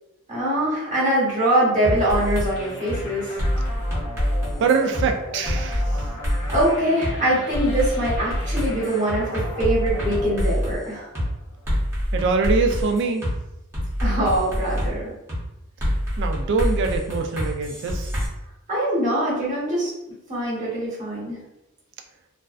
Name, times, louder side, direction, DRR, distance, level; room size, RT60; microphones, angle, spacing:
voice 1, 0.3-3.3 6.5-11.1 14.0-15.1 18.7-19.9 20.3-21.4, right 1 dB, 35° right, -6 dB, 1.0 m, -23 dB
sound 1, 1.8-2.5 2.9-3.0 3.4-5.1 5.5-6.6 7.0-7.1 7.5-10.8 11.2-11.3 11.7-13.3 13.7-14.9 15.3-15.4 15.8-18.3, equal, 10° right, 0.8 m, -25 dB
sound 2, 2.6-11.9, left 2 dB, 85° left, 0.4 m, -38 dB
voice 2, 4.6-6.0 12.1-13.3 16.2-18.1, right 4 dB, 55° right, 5 dB, 0.3 m, -23 dB
2.5 x 2.1 x 2.3 m, 0.90 s
head